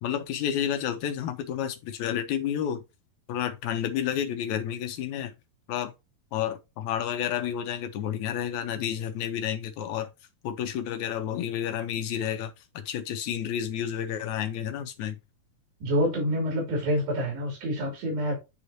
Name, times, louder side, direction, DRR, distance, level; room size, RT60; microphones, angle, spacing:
voice 1, 0.0-2.8 3.3-5.3 5.7-5.9 6.3-10.1 10.4-15.2, left 9 dB, 70° left, 1.9 m, -30 dB
voice 2, 15.8-18.4, equal, 85° right, 4.7 m, -27 dB
11.0 x 3.8 x 2.9 m
omnidirectional pair, 4.0 m